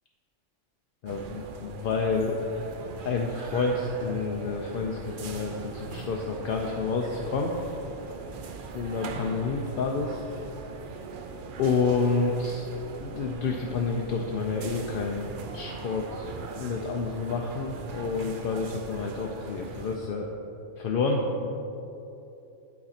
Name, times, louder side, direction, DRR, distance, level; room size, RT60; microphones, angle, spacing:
voice 1, 1.0-2.4 3.0-7.5 8.7-10.2 11.6-12.7 13.0-20.3 20.8-21.5, left 4 dB, 60° left, 0 dB, 0.6 m, -29 dB
sound 1, 1.1-20.0, right 4 dB, 60° right, 0.6 m, -40 dB
11.0 x 4.2 x 4.2 m, 2.9 s
omnidirectional pair, 1.3 m